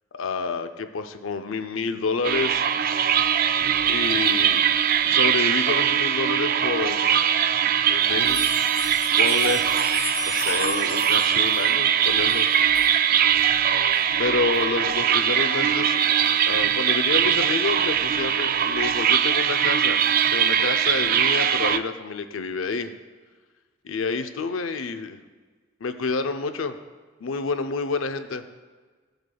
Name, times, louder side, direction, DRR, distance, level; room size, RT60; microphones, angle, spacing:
voice 1, 0.1-2.7 3.9-4.6 5.0-7.2 7.9-8.4 8.7-8.8 9.2-9.8 10.3-12.5 14.1-16.0 16.5-20.0 20.3-22.9 23.8-25.2 25.8-26.8 27.2-28.4, left 4 dB, 85° left, 8 dB, 0.6 m, -28 dB
sound 1, 2.2-21.8, right 9 dB, 45° right, 0.3 m, -21 dB
sound 2, 8.2-12.9 13.4-13.5 13.9-14.0 14.5-14.6, left 2 dB, 25° left, 2.8 m, -35 dB
15.0 x 7.9 x 2.3 m, 1.4 s
head